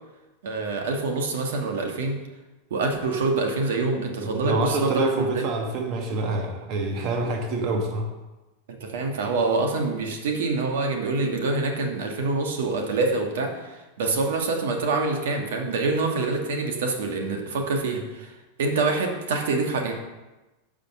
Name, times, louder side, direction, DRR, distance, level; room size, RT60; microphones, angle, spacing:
voice 1, 0.4-2.2 2.7-5.5 8.7-18.3 18.6-19.9, right 3 dB, 80° right, 3 dB, 1.3 m, -26 dB
voice 2, 4.2-8.1, right 2 dB, 40° right, 2 dB, 1.1 m, -26 dB
6.8 x 5.1 x 5.9 m, 1.1 s
supercardioid pair, 150°, 0 cm